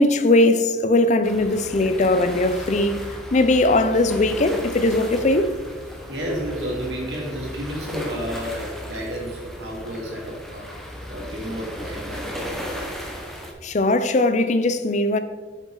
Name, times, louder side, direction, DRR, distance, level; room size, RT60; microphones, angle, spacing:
voice 1, 0.0-5.5 13.6-15.2, left 2 dB, 40° left, 0.5 m, -19 dB
sound 1, 1.2-13.5, equal, ahead, 1.1 m, -35 dB
voice 2, 6.1-10.7 11.1-12.8, equal, 80° right, 2.7 m, -32 dB
7.7 x 7.2 x 3.9 m
head